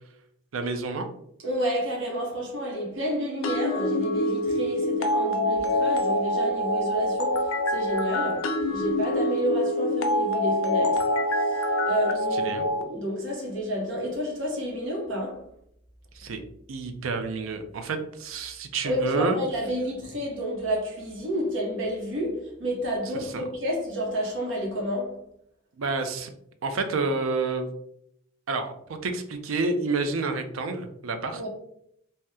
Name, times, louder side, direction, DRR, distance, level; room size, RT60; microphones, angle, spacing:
voice 1, 0.5-1.1 12.4-12.6 16.1-16.4 16.7-19.4 23.3-23.4 25.8-26.3 26.6-27.7 28.5-28.7 29.0-31.4, right 3 dB, 90° right, 0.5 m, -29 dB
voice 2, 1.4-15.4 18.8-25.2 31.3-31.5, equal, 70° right, 0.8 m, -30 dB
sound 1, 3.4-12.8, left 1 dB, 85° left, 0.4 m, -25 dB
2.8 x 2.1 x 3.5 m
head